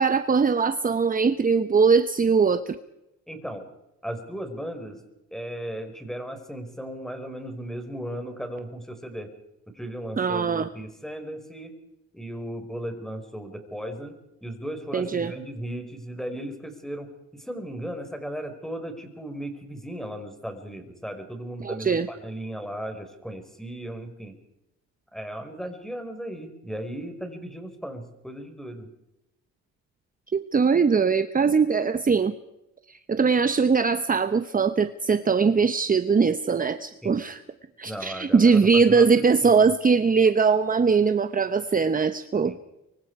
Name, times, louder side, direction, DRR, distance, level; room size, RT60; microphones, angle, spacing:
voice 1, 0.0-2.8 10.2-10.7 14.9-15.3 21.6-22.1 30.3-32.3 32.9-37.4 37.8-42.5, right 5 dB, 30° right, 11 dB, 1.0 m, -21 dB
voice 2, 3.3-3.7 4.0-5.0 5.3-9.3 9.7-11.8 12.1-24.4 25.1-28.9 37.0-37.2 37.9-39.7 42.4-42.6, right 1 dB, ahead, 6 dB, 5.4 m, -36 dB
24.5 x 24.0 x 4.9 m, 0.91 s
cardioid pair, 90°, 30 cm